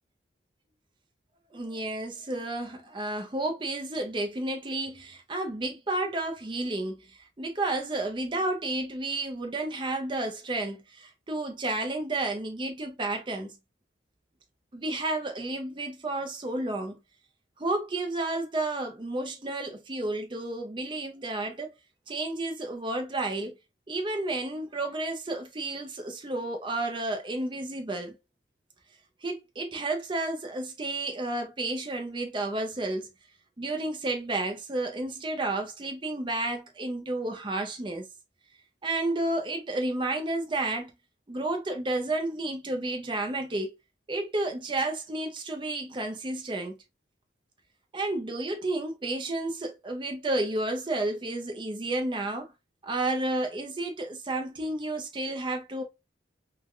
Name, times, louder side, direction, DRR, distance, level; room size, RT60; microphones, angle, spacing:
voice 1, 1.5-13.5 14.7-17.0 17.6-21.7 22.1-23.6 23.9-28.1 29.2-33.1 33.6-38.1 38.8-40.9 41.3-43.7 44.1-46.7 47.9-52.5 52.8-55.8, right 2 dB, 25° right, 0.5 m, -31 dB
3.2 x 2.2 x 2.4 m
head